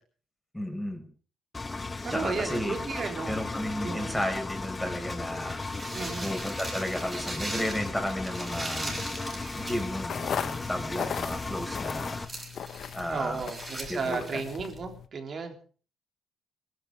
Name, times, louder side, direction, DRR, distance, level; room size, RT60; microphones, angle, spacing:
voice 1, 0.5-1.1 2.1-2.7 3.3-5.6 6.2-9.0 9.6-12.2 12.9-13.4 13.9-14.4, left 1 dB, 5° left, 4 dB, 5.3 m, -33 dB
Engine, 1.5-12.3, left 3 dB, 25° left, 1.3 m, -36 dB
voice 2, 2.0-3.3 3.8-4.2 5.9-6.3 13.1-15.5, right 5 dB, 50° right, 4 dB, 3.5 m, -34 dB
sound 1, 5.3-14.8, right 2 dB, 15° right, 6.4 m, -41 dB
sound 2, 10.0-15.1, left 8 dB, 60° left, 1.2 m, -37 dB
22.0 x 12.0 x 4.8 m, 0.42 s
cardioid pair, 90°, 0 cm